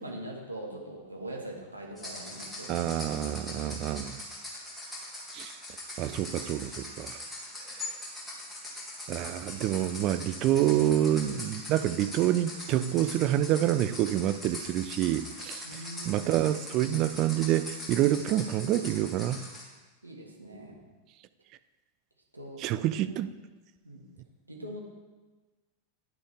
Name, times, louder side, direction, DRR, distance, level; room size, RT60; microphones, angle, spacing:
voice 1, 0.0-2.9 15.6-16.3 20.0-20.8 22.3-22.6 23.1-23.2 23.8-24.1 24.5-24.8, right 1 dB, 85° right, -1 dB, 1.7 m, -42 dB
sound 1, 2.0-19.6, left 1 dB, 5° left, 2.5 m, -42 dB
voice 2, 2.7-4.2 5.3-5.5 6.0-7.2 9.1-15.7 16.1-19.4 22.6-23.3, right 12 dB, 40° right, 13 dB, 0.4 m, -27 dB
10.5 x 8.8 x 3.5 m, 1.2 s
figure-of-eight pair, 90°, 0 cm